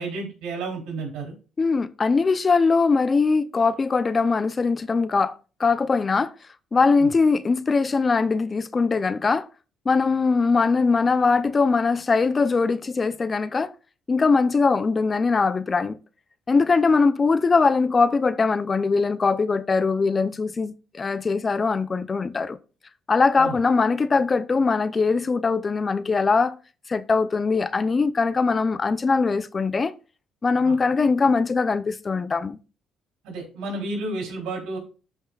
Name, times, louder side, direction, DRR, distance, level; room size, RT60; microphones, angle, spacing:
voice 1, 0.0-1.3 7.0-7.1 23.4-23.5 30.7-30.8 33.2-34.8, right 3 dB, 85° right, 3.7 m, -31 dB
voice 2, 1.6-6.3 6.7-9.5 9.9-13.7 14.1-16.0 16.5-22.6 23.1-26.6 26.9-29.9 30.4-32.6, left 4 dB, 35° left, 0.5 m, -21 dB
13.5 x 5.4 x 2.4 m
cardioid pair, 85°, 0 cm